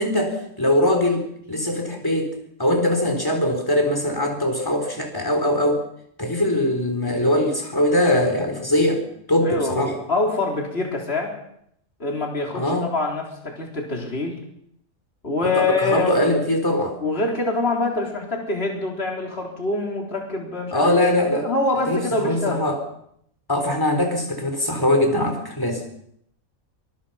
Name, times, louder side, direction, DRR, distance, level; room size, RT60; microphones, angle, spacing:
voice 1, 0.0-2.3 2.6-5.8 6.2-9.0 9.3-9.9 12.5-12.9 15.4-17.0 20.7-21.5 21.9-22.8 23.5-25.8, left 1 dB, 15° left, 4 dB, 4.0 m, -21 dB
voice 2, 9.4-11.3 12.0-14.4 15.2-16.3 17.0-20.9 21.3-22.6, left 2 dB, 45° left, 1 dB, 4.0 m, -25 dB
24.0 x 22.0 x 5.7 m, 0.71 s
omnidirectional pair, 1.5 m